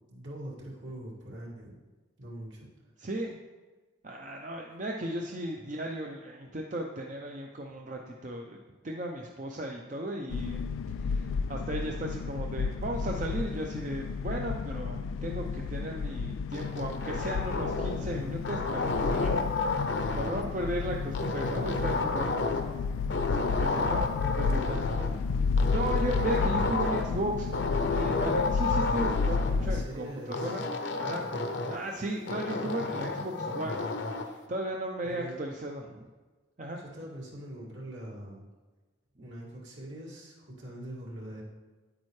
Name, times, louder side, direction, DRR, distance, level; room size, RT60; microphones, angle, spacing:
voice 1, 0.1-1.8 2.2-2.7 5.6-5.7 18.0-18.3 24.2-25.0 29.5-30.6 35.0-35.4 36.7-38.4 39.2-41.4, right 1 dB, 70° right, -4 dB, 2.3 m, -42 dB
voice 2, 3.0-3.4 4.0-8.6 8.8-10.7 11.0-19.4 20.1-22.4 23.4-24.1 24.3-25.1 25.6-27.5 27.9-30.6 31.0-31.2 31.7-33.8 34.1-36.1 36.6-36.8, right 1 dB, 40° right, 1 dB, 0.6 m, -35 dB
sound 1, 10.3-29.9, left 5 dB, 90° left, 0.3 m, -32 dB
sound 2, 16.5-18.1 18.4-20.5 21.1-22.8 23.1-25.1 25.6-27.2 27.5-29.5 30.3-31.9 32.3-34.3, left 3 dB, 65° left, 0.8 m, -31 dB
9.5 x 8.7 x 3.2 m, 1.3 s
head